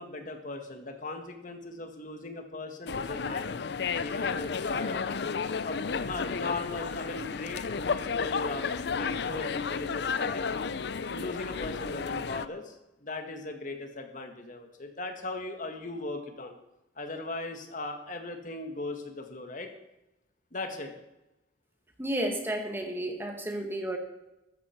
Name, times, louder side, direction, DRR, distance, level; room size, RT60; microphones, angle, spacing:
voice 1, 0.0-3.6 4.0-5.0 5.6-8.7 9.0-10.5 11.0-12.7 13.0-16.6 17.0-19.7 20.5-20.9, left 2 dB, 45° left, 5 dB, 1.9 m, -38 dB
sound 1, 2.9-12.5, left 5 dB, 60° left, 0.5 m, -32 dB
voice 2, 22.0-24.0, right 1 dB, 15° right, 4 dB, 1.9 m, -32 dB
14.0 x 13.0 x 4.6 m, 0.92 s
head